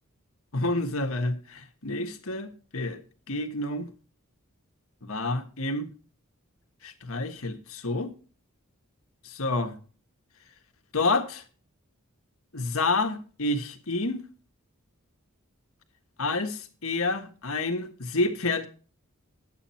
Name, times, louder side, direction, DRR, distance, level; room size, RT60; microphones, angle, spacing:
voice 1, 0.5-3.0 3.3-3.9 5.0-5.9 6.8-8.1 9.2-9.7 10.9-11.4 12.5-14.2 16.2-18.7, left 2 dB, 70° left, 1.5 m, -29 dB
11.0 x 8.2 x 4.3 m
head